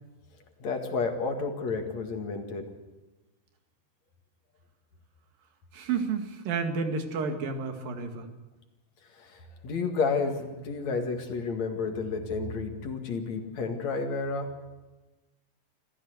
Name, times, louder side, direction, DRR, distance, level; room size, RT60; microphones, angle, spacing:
voice 1, 0.6-2.7 9.2-14.5, left 4 dB, 55° left, 5 dB, 3.1 m, -31 dB
voice 2, 5.7-8.3, right 5 dB, 80° right, 6 dB, 3.9 m, -31 dB
26.5 x 15.0 x 8.0 m, 1.1 s
omnidirectional pair, 4.0 m